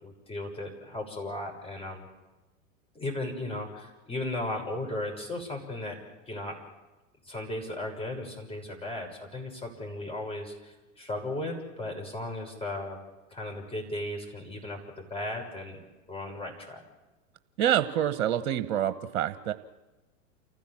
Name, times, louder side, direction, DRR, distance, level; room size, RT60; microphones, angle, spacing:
voice 1, 0.0-2.0 2.9-6.0 6.3-6.5 7.2-13.0 13.3-15.8 16.1-16.8, left 1 dB, 15° left, 1 dB, 6.5 m, -36 dB
voice 2, 17.6-19.5, right 10 dB, 55° right, 11 dB, 1.2 m, -27 dB
29.0 x 15.0 x 7.5 m, 1.1 s
hypercardioid pair, 105°, 40 cm